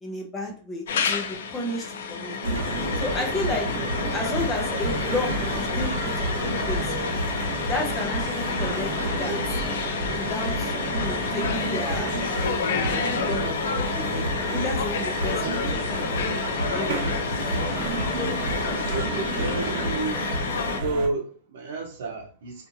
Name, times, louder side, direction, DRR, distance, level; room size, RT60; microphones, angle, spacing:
voice 1, 0.0-2.3 3.0-3.7 4.1-6.3 6.6-6.9 7.7-8.9 9.2-9.4 10.2-12.2 12.8-13.5 13.9-15.6 15.9-16.0 16.7-17.9, left 2 dB, 10° left, 0.6 m, -32 dB
sound 1, 0.9-20.8, left 5 dB, 85° left, 0.4 m, -29 dB
sound 2, 2.4-21.1, right 2 dB, 50° right, 0.9 m, -30 dB
sound 3, 4.0-14.1 15.2-19.9, left 3 dB, 55° left, 0.8 m, -43 dB
voice 2, 18.9-20.3 20.8-22.7, right 3 dB, 90° right, 0.7 m, -30 dB
2.7 x 2.5 x 2.6 m
supercardioid pair, 175°, 0 cm